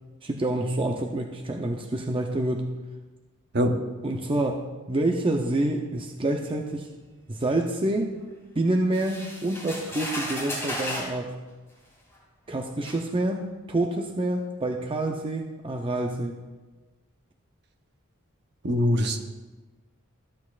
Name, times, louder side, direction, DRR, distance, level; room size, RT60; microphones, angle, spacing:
voice 1, 0.2-2.7 4.0-6.9 7.3-8.1 8.6-11.3 12.5-16.4, right 1 dB, 25° right, 2 dB, 0.6 m, -27 dB
sound 1, 8.9-11.2 12.1-12.2 12.8-13.0, left 1 dB, 10° left, 3.1 m, -34 dB
voice 2, 18.6-19.2, equal, 50° right, 5 dB, 0.9 m, -22 dB
14.0 x 8.3 x 2.4 m, 1.2 s
head